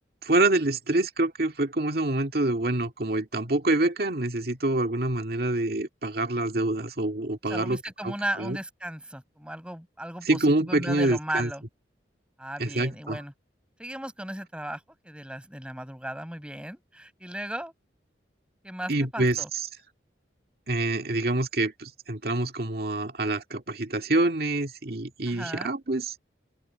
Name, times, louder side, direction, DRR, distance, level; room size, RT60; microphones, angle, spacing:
voice 1, 0.2-8.6 10.3-11.5 12.6-13.2 18.9-19.4 20.7-26.1, right 2 dB, 60° right, 2.1 m, -26 dB
voice 2, 7.5-11.6 12.4-13.3 13.8-17.7 18.6-19.5 25.3-25.7, right 1 dB, 5° right, 6.4 m, -36 dB
open air
head